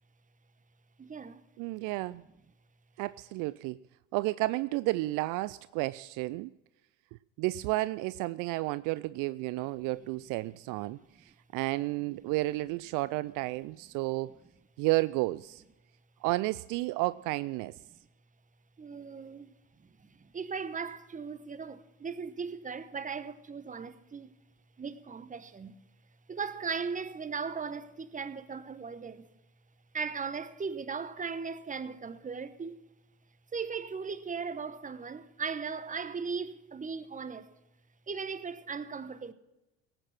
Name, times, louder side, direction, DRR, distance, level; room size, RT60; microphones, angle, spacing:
voice 1, 1.0-1.4 18.8-19.5 19.8-24.3 24.8-25.8 26.3-29.3 29.9-32.8 33.5-37.5 38.1-39.3, right 5 dB, 25° right, 1.1 m, -38 dB
voice 2, 1.6-2.2 3.0-3.8 4.1-6.5 7.4-14.3 14.8-15.6 16.2-17.8, right 20 dB, 65° right, 0.5 m, -32 dB
18.0 x 8.9 x 6.0 m
hypercardioid pair, 70°, 34 cm